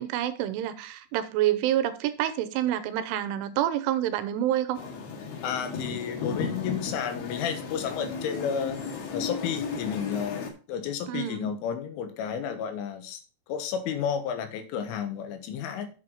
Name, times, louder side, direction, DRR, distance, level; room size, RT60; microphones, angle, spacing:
voice 1, 0.0-4.8 11.1-11.5, right 12 dB, 85° right, 3.3 m, -27 dB
sound 1, 4.7-10.5, left 5 dB, 60° left, 3.3 m, -35 dB
voice 2, 5.4-8.8 9.1-13.2 13.5-15.9, left 7 dB, 80° left, 3.9 m, -32 dB
8.1 x 7.9 x 4.1 m
omnidirectional pair, 5.7 m